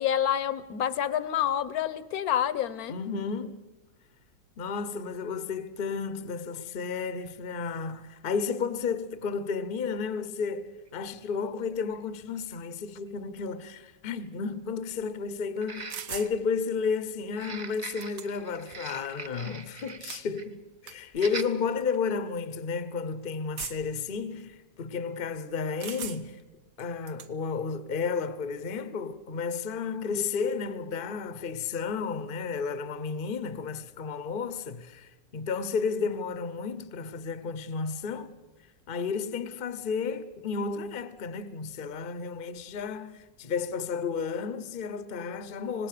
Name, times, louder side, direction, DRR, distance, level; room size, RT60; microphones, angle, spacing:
voice 1, 0.0-3.0, left 10 dB, 60° left, 1.3 m, -28 dB
voice 2, 2.9-3.7 4.6-26.4 26.8-38.3 38.9-45.9, left 5 dB, 40° left, 0.9 m, -32 dB
sound 1, 10.9-11.0 11.9-12.0 12.5-12.6 15.6-16.4 17.3-20.0 20.3-20.5 21.1-21.5 22.0-22.2, right 4 dB, 30° right, 0.9 m, -42 dB
sound 2, 15.9-16.3 17.4-17.5 17.7-18.6 19.8-20.3 20.9-21.0 21.8-22.0 23.6-24.0 25.8-26.4 26.8-27.3, right 8 dB, 70° right, 1.6 m, -39 dB
25.5 x 19.5 x 6.8 m
omnidirectional pair, 2.0 m